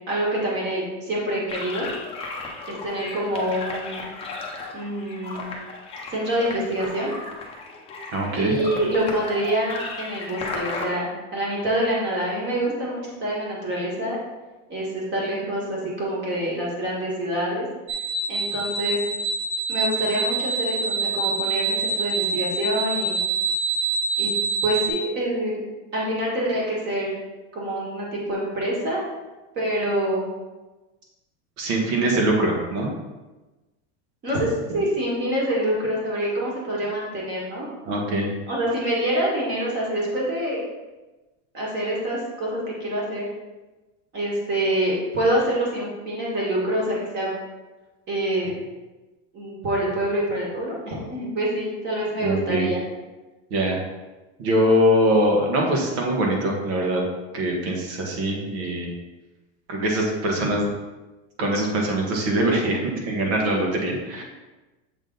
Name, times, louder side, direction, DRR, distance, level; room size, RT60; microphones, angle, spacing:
voice 1, 0.1-1.9 2.7-4.1 4.7-5.5 6.1-7.1 8.3-14.2 14.7-17.7 18.3-19.0 19.7-23.2 24.2-24.3 24.6-25.6 25.9-27.1 27.5-29.0 29.5-30.3 31.9-32.3 34.2-37.7 38.5-40.6 41.5-43.2 44.1-47.3 48.1-48.5 49.3-52.8, right 1 dB, 30° right, -4 dB, 1.7 m, -26 dB
sound 1, 1.5-10.9, left 3 dB, 15° left, 0.7 m, -35 dB
voice 2, 8.1-8.5 31.6-32.9 37.9-38.3 52.2-52.7 53.5-53.8 54.4-57.0 57.3-58.9 59.7-60.7 61.4-64.2, right 1 dB, 65° right, 0 dB, 1.6 m, -22 dB
sound 2, 17.9-24.9, right 3 dB, 50° right, 1.2 m, -26 dB
7.3 x 3.7 x 3.9 m, 1.1 s
supercardioid pair, 160°, 37 cm